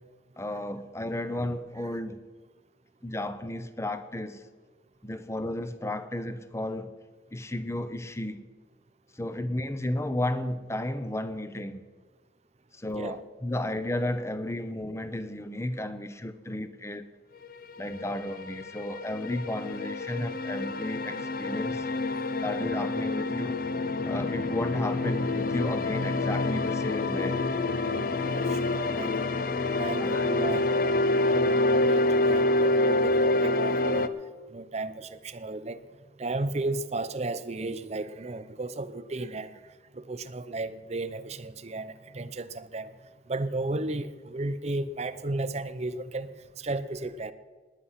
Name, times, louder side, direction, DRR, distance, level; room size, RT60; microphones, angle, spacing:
voice 1, 0.4-2.2 3.0-4.4 5.0-6.9 7.3-8.4 9.1-11.8 12.7-17.1 17.8-21.8 22.4-23.5 24.0-27.4 29.9-30.3, left 1 dB, 15° left, 0.8 m, -33 dB
sound 1, 17.9-34.1, left 2 dB, 50° left, 0.7 m, -27 dB
voice 2, 28.1-29.2 29.8-30.7 31.3-34.1 34.5-35.8 36.2-39.6 39.9-42.9 43.3-47.3, right 2 dB, 35° right, 0.6 m, -34 dB
19.0 x 9.9 x 5.8 m
head